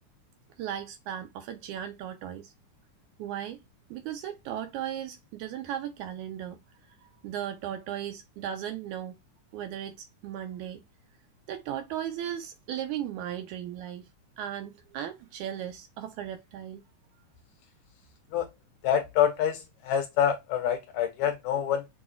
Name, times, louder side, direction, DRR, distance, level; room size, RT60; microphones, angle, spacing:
voice 1, 0.6-2.5 3.2-3.6 3.9-6.6 6.9-9.2 9.5-10.8 11.5-14.1 14.4-16.8, right 10 dB, 80° right, 2.0 m, -36 dB
voice 2, 18.8-21.8, left 9 dB, 80° left, 1.8 m, -26 dB
6.0 x 2.2 x 2.3 m
omnidirectional pair, 3.6 m